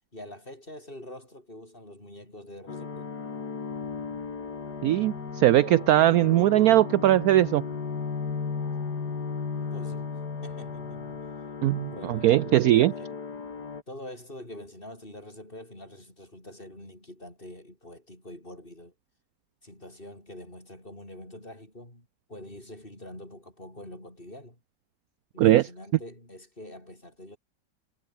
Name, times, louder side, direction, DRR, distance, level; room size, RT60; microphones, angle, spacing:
voice 1, 0.1-3.1 9.5-10.1 10.4-11.2 11.7-13.2 13.9-18.9 19.6-24.6 25.3-27.4, left 1 dB, 30° left, 7.7 m, -45 dB
sound 1, 2.7-13.8, left 5 dB, 65° left, 3.0 m, -35 dB
voice 2, 4.8-7.6 11.6-12.9 25.4-25.7, right 14 dB, 70° right, 0.9 m, -20 dB
omnidirectional pair, 1.9 m